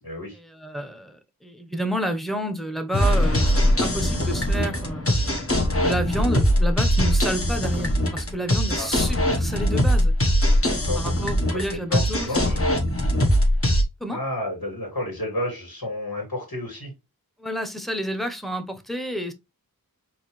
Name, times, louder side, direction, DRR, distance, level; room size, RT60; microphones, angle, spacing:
voice 1, 0.0-0.4 8.8-8.9 10.7-11.1 11.5-12.6 14.1-16.9, left 1 dB, 90° left, 2.6 m, -31 dB
voice 2, 0.6-3.5 3.8-5.2 5.8-10.1 11.0-12.3 14.0-14.2 17.4-19.3, equal, ahead, 0.9 m, -30 dB
sound 1, 2.9-13.8, equal, 40° left, 1.2 m, -21 dB
4.8 x 3.2 x 3.1 m
wide cardioid pair, 50°, 35 cm